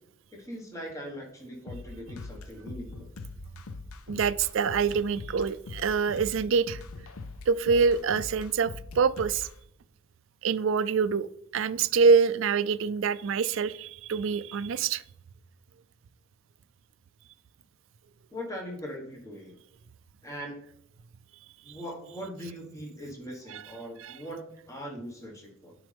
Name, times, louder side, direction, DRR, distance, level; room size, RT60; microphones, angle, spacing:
voice 1, 0.3-3.1 18.3-19.6 20.2-20.6 21.6-25.7, equal, 15° left, 0 dB, 1.3 m, -40 dB
sound 1, 1.7-9.5, left 3 dB, 85° left, 0.5 m, -42 dB
voice 2, 4.1-6.8 7.5-9.5 10.4-11.3 11.5-15.0 23.5-23.6 24.0-24.1, right 5 dB, 65° right, 15 dB, 0.3 m, -25 dB
9.3 x 5.2 x 3.4 m, 0.73 s
head